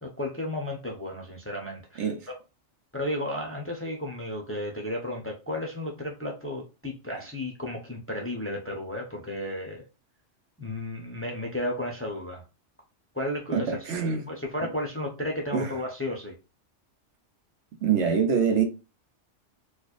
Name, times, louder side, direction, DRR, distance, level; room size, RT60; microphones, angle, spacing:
voice 1, 0.0-2.4 2.9-9.8 10.6-12.4 13.1-13.8 14.3-16.3, left 1 dB, 15° left, 0.7 m, -33 dB
voice 2, 13.5-14.3 15.5-15.7 17.8-18.6, right 6 dB, 70° right, 1.0 m, -25 dB
4.4 x 2.5 x 2.5 m
omnidirectional pair, 1.2 m